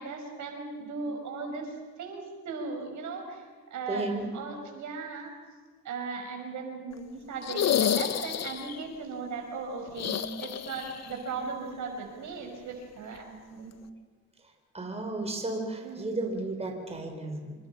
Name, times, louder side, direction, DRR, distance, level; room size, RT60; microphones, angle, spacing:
voice 1, 0.0-3.4 3.7-5.3 5.8-13.7 15.8-16.1, right 4 dB, 70° right, 3 dB, 5.7 m, -37 dB
voice 2, 3.9-4.3 14.7-17.5, right 2 dB, 20° right, 3 dB, 4.6 m, -33 dB
sound 1, 7.4-8.8 9.9-11.1 11.4-11.5 13.1-13.2, left 9 dB, 60° left, 1.4 m, -29 dB
27.5 x 24.5 x 5.8 m, 1.4 s
cardioid pair, 90°, 30 cm